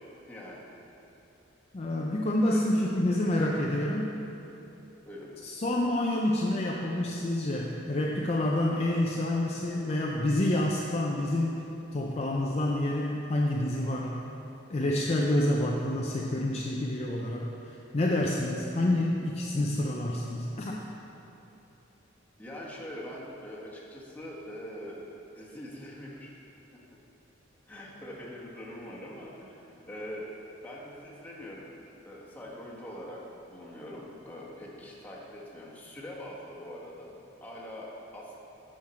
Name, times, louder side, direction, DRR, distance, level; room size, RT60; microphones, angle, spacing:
voice 1, 0.3-0.7 2.4-2.9 5.0-5.3 22.4-25.1 25.3-26.4 27.7-30.3 30.6-31.7 32.0-33.2 33.5-38.4, equal, 10° left, -5 dB, 1.3 m, -43 dB
voice 2, 1.7-4.2 5.4-11.6 11.9-14.1 14.7-20.8, left 1 dB, 35° left, -2 dB, 0.5 m, -28 dB
9.4 x 6.5 x 4.3 m, 2.9 s
head